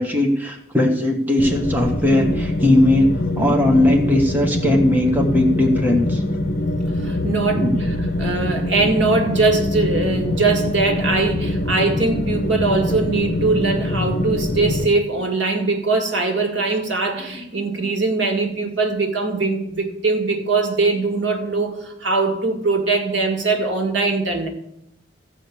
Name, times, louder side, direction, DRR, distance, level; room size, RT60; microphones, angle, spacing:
voice 1, 0.0-6.2 7.5-7.8, left 1 dB, 10° right, 1 dB, 1.2 m, -18 dB
sound 1, 1.4-14.9, left 1 dB, 50° left, 0.9 m, -23 dB
voice 2, 7.0-7.7 8.0-24.5, right 3 dB, 75° right, 4 dB, 1.9 m, -21 dB
14.5 x 5.1 x 8.5 m, 0.81 s
head